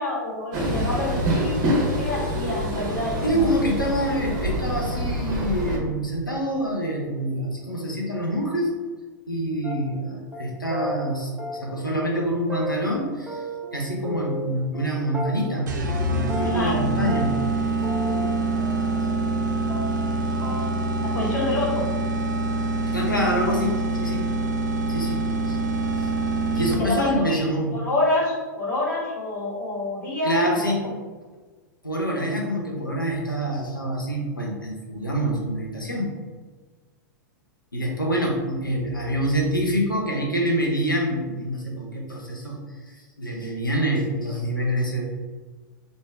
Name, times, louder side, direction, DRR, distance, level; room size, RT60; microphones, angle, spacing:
voice 1, 0.0-3.5 16.4-16.9 20.3-21.8 26.8-27.4 27.7-31.0, left 1 dB, 65° left, -5 dB, 1.5 m, -28 dB
Train, 0.5-5.8, equal, 40° right, 0.9 m, -26 dB
voice 2, 3.2-8.7 9.3-13.5 13.7-17.4 22.9-24.3 24.9-25.6 26.0-26.1 26.5-27.7 30.2-30.8 31.8-36.1 37.7-45.1, equal, 90° left, -1 dB, 0.8 m, -26 dB
sound 1, 9.6-10.0 10.3-10.4 10.7-10.9 11.4-11.9 12.1-12.2 12.5-13.7 14.0-14.9 15.1-15.6 15.9-16.0 16.3-16.8 17.1-19.4 19.7-20.1 20.4-20.6, equal, 10° right, 0.6 m, -33 dB
sound 2, 15.7-27.1, right 3 dB, 65° right, 0.5 m, -25 dB
3.3 x 2.7 x 3.4 m, 1.4 s
figure-of-eight pair, 100°, 11 cm